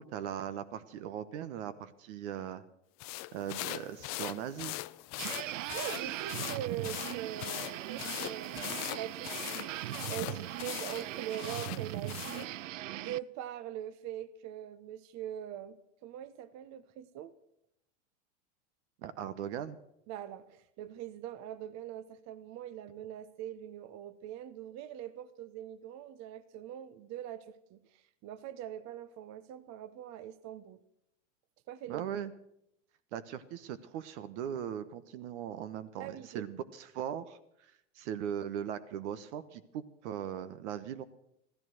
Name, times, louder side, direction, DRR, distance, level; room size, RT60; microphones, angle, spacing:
voice 1, 0.0-2.6 3.3-4.7 19.0-19.8 31.9-32.3 33.1-41.0, right 9 dB, 65° right, 12 dB, 1.1 m, -39 dB
sound 1, 3.0-12.5, left 20 dB, 45° left, 0.6 m, -41 dB
sound 2, 5.2-13.2, right 15 dB, 85° right, 0.5 m, -39 dB
voice 2, 5.7-8.6 8.9-9.8 10.1-12.5 12.9-15.8 16.0-17.3 20.1-30.8 31.7-32.0 36.0-36.4, right 11 dB, 45° right, 15 dB, 1.1 m, -42 dB
15.0 x 14.0 x 6.3 m, 0.78 s
hypercardioid pair, 100°, 38 cm